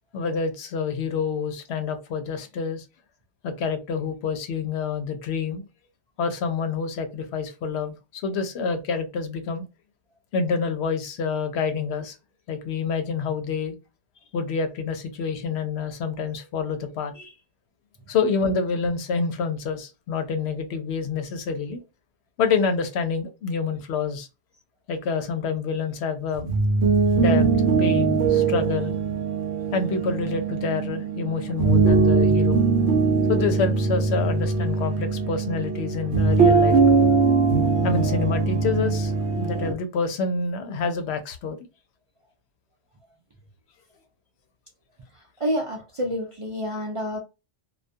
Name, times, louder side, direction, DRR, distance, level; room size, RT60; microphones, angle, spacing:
voice 1, 0.1-2.8 3.4-5.7 6.2-9.6 10.3-12.2 12.5-13.7 14.3-17.3 18.1-21.8 22.4-24.3 24.9-26.5 27.2-27.4 27.8-29.0 29.7-32.6 33.3-37.0 37.8-41.6, left 5 dB, 70° left, 0.8 m, -27 dB
sound 1, 26.4-39.7, right 4 dB, 75° right, 0.8 m, -21 dB
voice 2, 45.4-47.2, equal, 50° right, 0.3 m, -28 dB
2.3 x 2.2 x 2.5 m
omnidirectional pair, 1.2 m